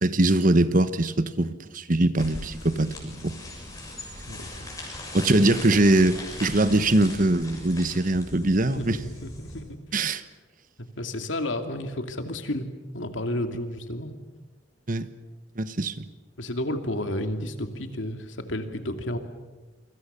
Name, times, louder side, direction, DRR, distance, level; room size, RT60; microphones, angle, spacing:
voice 1, 0.0-3.3 5.1-9.0 9.9-10.2 14.9-15.1 15.6-16.1, right 2 dB, 45° right, 1.1 m, -22 dB
sound 1, 2.2-9.6, left 1 dB, 20° left, 6.8 m, -39 dB
voice 2, 4.3-4.7 8.7-9.8 11.0-12.7 12.9-14.1 16.4-19.2, left 1 dB, 75° left, 2.6 m, -31 dB
28.0 x 25.0 x 6.9 m
head